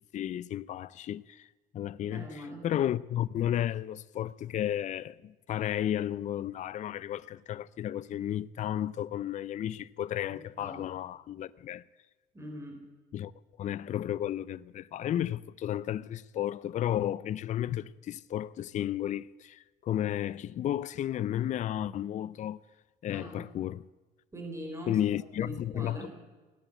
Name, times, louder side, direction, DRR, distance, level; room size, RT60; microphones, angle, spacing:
voice 1, 0.1-1.5 1.7-2.3 2.6-11.8 13.1-13.3 13.6-22.6 23.0-23.8 24.9-26.1, left 11 dB, 45° left, 0.5 m, -33 dB
voice 2, 2.1-2.7 10.3-10.9 12.3-12.8 23.1-23.5 24.3-25.0 25.4-26.1, equal, 15° right, 4.2 m, -42 dB
16.5 x 10.0 x 8.0 m
cardioid pair, 110°, 17 cm